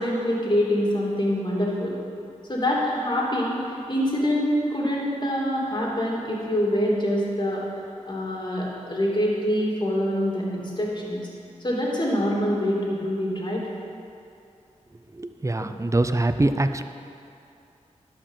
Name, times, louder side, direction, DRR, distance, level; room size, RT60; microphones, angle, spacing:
voice 1, 0.0-1.9 2.5-3.6 3.9-7.6 8.1-11.2 11.6-13.6 15.6-15.7, equal, 35° left, -4 dB, 2.7 m, -25 dB
voice 2, 15.1-16.8, right 2 dB, 25° right, 9 dB, 0.6 m, -23 dB
11.5 x 5.1 x 7.4 m, 2.5 s
cardioid pair, 50°, 13 cm